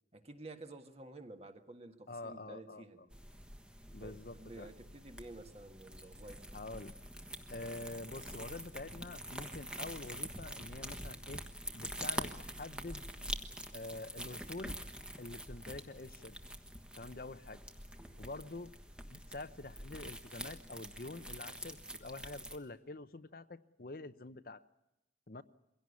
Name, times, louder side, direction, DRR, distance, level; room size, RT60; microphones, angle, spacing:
voice 1, 0.1-3.1 4.0-6.4, right 2 dB, 35° right, 6 dB, 1.8 m, -51 dB
voice 2, 2.1-2.8 3.9-4.7 6.5-7.0 7.5-11.4 11.7-13.0 13.7-14.8 15.2-16.4 17.0-17.6 18.2-18.7 19.1-24.6 25.3-25.4, left 2 dB, 55° left, 12 dB, 0.8 m, -46 dB
sound 1, 3.1-22.6, equal, 5° right, 1.3 m, -46 dB
23.0 x 17.0 x 9.7 m, 0.92 s
head